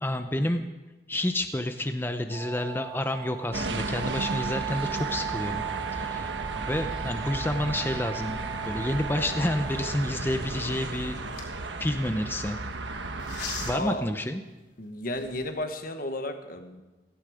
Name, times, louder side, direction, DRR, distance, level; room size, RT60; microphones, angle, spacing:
voice 1, 0.0-0.7 1.1-5.6 5.9-6.3 6.7-8.4 8.7-11.2 11.8-12.6 13.5-14.4, left 1 dB, 10° left, 7 dB, 0.7 m, -29 dB
sound 1, 2.3-9.9, right 11 dB, 55° right, 2.0 m, -37 dB
sound 2, 3.5-13.8, right 2 dB, 80° right, 1.3 m, -34 dB
sound 3, 8.5-12.5 13.2-14.0 14.6-14.7 15.0-15.6, left 5 dB, 65° left, 3.7 m, -43 dB
voice 2, 13.7-14.0 14.8-16.8, left 1 dB, 50° left, 6 dB, 1.4 m, -33 dB
17.0 x 16.0 x 5.1 m, 1.1 s
head